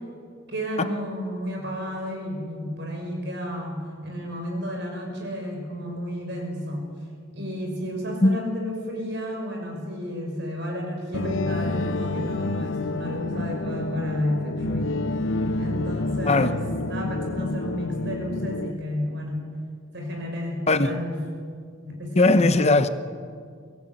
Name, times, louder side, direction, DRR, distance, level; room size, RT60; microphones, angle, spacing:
voice 1, 0.5-6.9 7.3-15.0 15.6-19.4 19.9-21.2 21.8-22.5, equal, 60° right, 2 dB, 5.9 m, -32 dB
sound 1, 11.1-18.7, left 2 dB, 75° left, 0.8 m, -28 dB
voice 2, 22.2-22.9, left 2 dB, 35° left, 11 dB, 0.8 m, -19 dB
23.0 x 16.5 x 9.0 m, 2.1 s
head